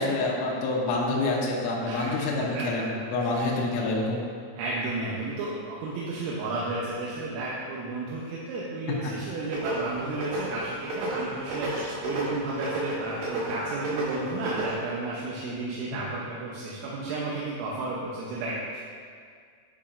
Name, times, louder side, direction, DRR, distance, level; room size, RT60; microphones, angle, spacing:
voice 1, 0.0-4.2, left 2 dB, 80° left, -3 dB, 3.0 m, -27 dB
voice 2, 1.8-2.9 3.2-3.6 4.6-11.7 12.0-18.8, right 2 dB, 85° right, -5 dB, 3.4 m, -33 dB
sound 1, 9.5-14.7, right 2 dB, 65° right, 3.8 m, -33 dB
10.0 x 4.8 x 2.5 m, 2.1 s
omnidirectional pair, 5.8 m